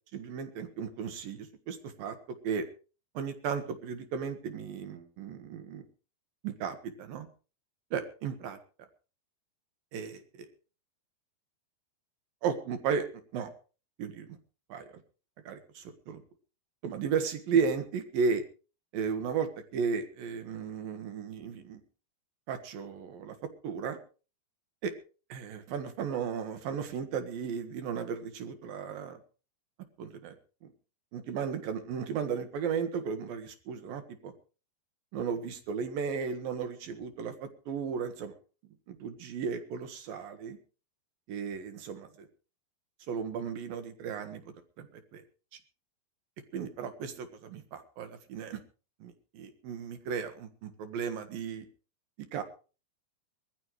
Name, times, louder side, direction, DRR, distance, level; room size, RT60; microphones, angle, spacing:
voice 1, 0.1-2.2 2.4-2.6 3.1-5.8 6.4-7.3 7.9-8.6 9.9-10.5 12.4-13.1 13.3-13.5 14.0-14.4 14.7-15.0 15.4-16.2 16.8-18.4 18.9-21.8 22.5-23.4 23.6-24.0 24.8-24.9 25.3-29.2 30.0-30.4 30.6-30.7 31.1-34.3 35.1-38.3 38.9-40.6 41.3-42.3 43.1-45.2 46.5-48.6 49.0-51.7 52.3-52.4, right 6 dB, 65° right, 8 dB, 3.1 m, -35 dB
21.5 x 14.0 x 3.2 m, 0.35 s
omnidirectional pair, 4.9 m